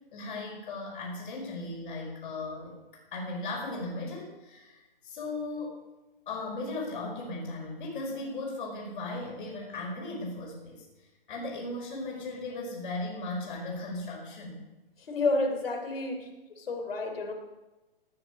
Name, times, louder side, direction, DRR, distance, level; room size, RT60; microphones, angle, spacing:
voice 1, 0.1-2.8 3.1-5.8 6.3-10.8 11.3-14.6, left 2 dB, 55° left, -2 dB, 5.4 m, -37 dB
voice 2, 15.1-16.3 16.6-17.3, left 3 dB, 75° left, 4 dB, 3.5 m, -30 dB
18.0 x 9.4 x 5.2 m, 1.1 s
hypercardioid pair, 140°, 30 cm